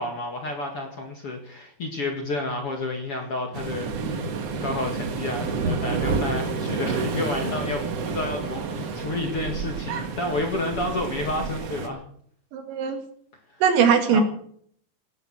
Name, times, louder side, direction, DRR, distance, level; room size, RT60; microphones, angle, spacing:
voice 1, 0.0-4.3 4.6-12.0 14.1-14.2, left 2 dB, 45° left, 2 dB, 2.3 m, -30 dB
Waves surf, 3.5-11.9, right 4 dB, 60° right, 1.7 m, -29 dB
voice 2, 12.5-13.0 13.6-14.2, right 7 dB, 85° right, 5 dB, 4.5 m, -20 dB
19.0 x 10.5 x 6.3 m, 0.63 s
omnidirectional pair, 5.1 m